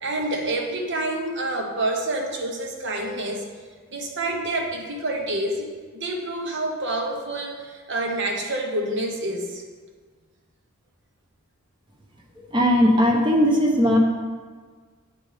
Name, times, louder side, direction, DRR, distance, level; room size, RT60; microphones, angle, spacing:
voice 1, 0.0-3.4 3.9-5.7 5.9-9.6, right 1 dB, 60° right, 2 dB, 1.1 m, -27 dB
voice 2, 12.5-14.0, equal, 20° right, 1 dB, 0.9 m, -18 dB
8.7 x 4.4 x 5.0 m, 1.5 s
head